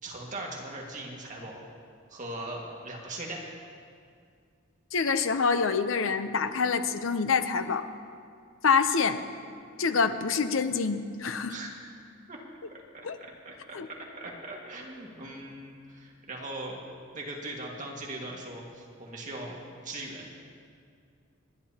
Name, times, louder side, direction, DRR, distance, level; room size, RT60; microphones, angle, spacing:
voice 1, 0.0-1.6 2.1-3.4 11.5-11.7 12.3-12.4 12.9-13.0 13.5-13.8 14.2-16.8 17.1-19.6 19.8-20.3, right 2 dB, 40° right, -2 dB, 1.9 m, -39 dB
voice 2, 4.9-7.9 8.6-9.2 9.8-11.6 13.0-13.2 13.7-13.9, left 5 dB, 75° left, 9 dB, 0.7 m, -26 dB
28.5 x 11.0 x 2.9 m, 2.2 s
head